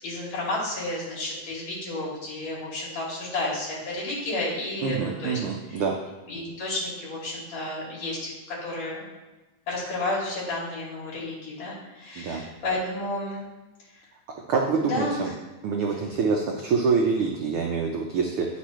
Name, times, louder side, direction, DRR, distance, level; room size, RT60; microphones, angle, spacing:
voice 1, 0.0-5.4 5.7-5.8 6.3-9.0 9.7-13.5 13.9-14.0 14.8-15.3, left 2 dB, 60° left, -5 dB, 3.9 m, -31 dB
voice 2, 4.8-5.9 12.2-12.4 14.5-15.3 15.6-18.5, right 5 dB, 90° right, 0 dB, 1.1 m, -25 dB
10.0 x 6.3 x 3.1 m, 1.1 s
omnidirectional pair, 3.5 m